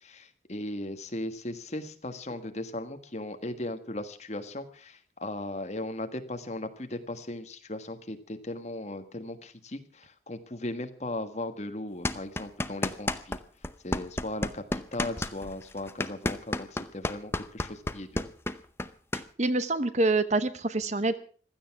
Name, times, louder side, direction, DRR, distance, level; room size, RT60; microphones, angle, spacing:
voice 1, 0.0-13.4 13.8-18.2, left 1 dB, 35° left, 8 dB, 1.5 m, -37 dB
sound 1, 12.0-13.4 13.6-19.2, left 1 dB, 15° left, 0.7 m, -31 dB
voice 2, 19.1-21.2, right 2 dB, 40° right, 13 dB, 0.9 m, -26 dB
16.0 x 13.0 x 5.9 m, 0.43 s
head